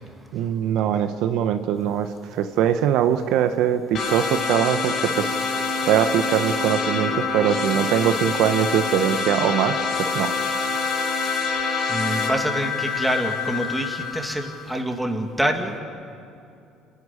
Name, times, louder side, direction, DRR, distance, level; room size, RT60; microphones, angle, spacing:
voice 1, 0.3-5.4 5.8-10.3, right 9 dB, 70° right, 9 dB, 0.9 m, -22 dB
sound 1, 3.9-14.8, left 4 dB, 55° left, 3.5 m, -26 dB
voice 2, 11.9-15.8, right 1 dB, 5° right, 4 dB, 2.4 m, -26 dB
29.0 x 11.5 x 9.9 m, 2.6 s
supercardioid pair, 95°, 0 cm